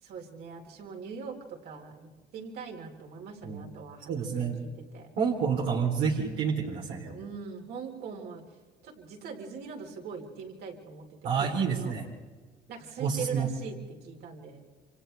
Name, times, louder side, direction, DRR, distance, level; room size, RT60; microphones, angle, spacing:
voice 1, 0.0-4.7 4.9-5.1 7.1-8.4 8.8-11.9 12.7-14.6, right 5 dB, 70° right, 1 dB, 4.3 m, -41 dB
voice 2, 4.1-4.6 5.2-7.1 11.2-12.0 13.0-13.5, right 6 dB, 85° right, -2 dB, 3.6 m, -29 dB
29.0 x 27.0 x 3.5 m, 1.4 s
cardioid pair, 110°, 17 cm